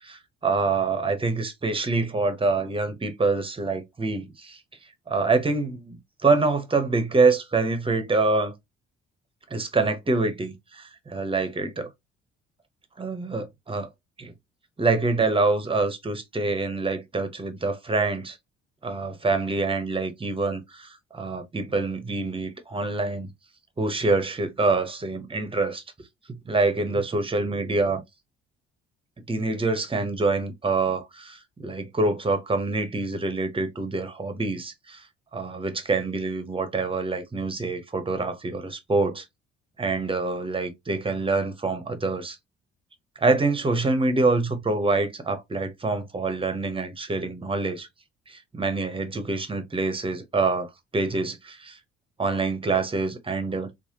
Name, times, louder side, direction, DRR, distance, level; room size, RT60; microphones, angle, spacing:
voice 1, 0.0-4.6 5.1-8.5 9.5-11.9 13.0-13.9 14.2-14.3 14.8-18.4 18.8-23.3 23.8-25.8 26.3-28.0 29.3-35.0 35.3-39.2 39.8-42.4 43.2-47.9 48.3-51.8 52.2-53.7, right 3 dB, 20° right, 0.8 m, -26 dB
3.1 x 2.1 x 2.9 m
hypercardioid pair, 50°, 30 cm